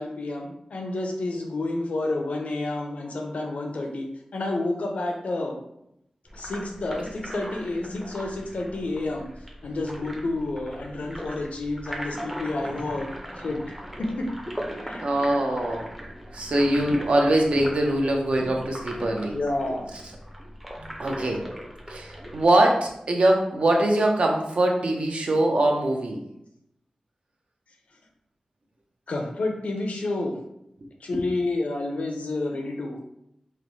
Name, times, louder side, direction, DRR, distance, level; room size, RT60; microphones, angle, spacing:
voice 1, 0.0-4.1 4.3-5.6 6.3-9.3 9.6-13.1 13.4-14.3 14.8-15.1 19.3-19.9 29.1-30.4 31.0-33.0, left 2 dB, 75° left, 2 dB, 0.5 m, -30 dB
sound 1, 6.3-22.5, equal, 5° right, 0.5 m, -39 dB
voice 2, 15.0-15.9 16.3-19.4 21.0-21.4 21.9-26.2, right 1 dB, 60° right, 1 dB, 0.5 m, -22 dB
3.0 x 2.0 x 2.7 m, 0.79 s
wide cardioid pair, 100°, 2 cm